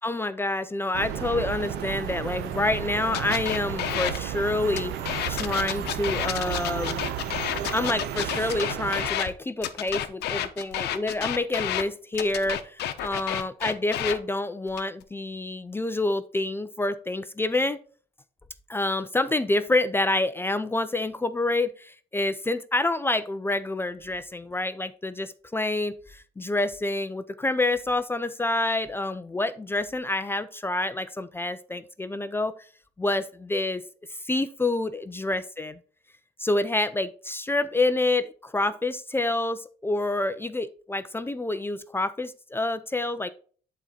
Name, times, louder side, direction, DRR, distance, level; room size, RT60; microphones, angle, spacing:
voice 1, 0.0-4.9 5.3-7.1 7.7-17.8 18.7-32.5 33.0-33.8 34.2-35.8 36.4-43.3, left 2 dB, 15° left, 13 dB, 0.4 m, -27 dB
sound 1, 0.9-9.1, right 10 dB, 80° right, 0.7 m, -33 dB
sound 2, 3.1-4.2 4.7-9.3 9.6-11.8 12.1-14.2 14.7-15.0, left 11 dB, 75° left, 0.8 m, -30 dB
8.0 x 4.1 x 4.2 m, 0.43 s
cardioid pair, 110°, 17 cm